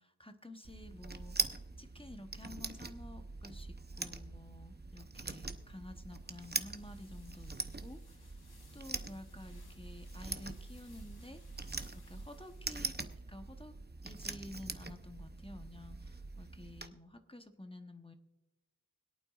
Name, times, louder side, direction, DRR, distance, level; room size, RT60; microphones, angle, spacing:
voice 1, 0.0-7.5 7.8-8.4 8.7-11.4 12.1-13.7 14.0-16.0 16.4-18.1, left 1 dB, 15° left, 6 dB, 0.9 m, -51 dB
sound 1, 0.6-16.9, right 3 dB, 25° right, 0.7 m, -43 dB
sound 2, 6.2-12.7, left 3 dB, 80° left, 1.3 m, -62 dB
25.0 x 8.8 x 2.4 m, 1.1 s
wide cardioid pair, 40°, 37 cm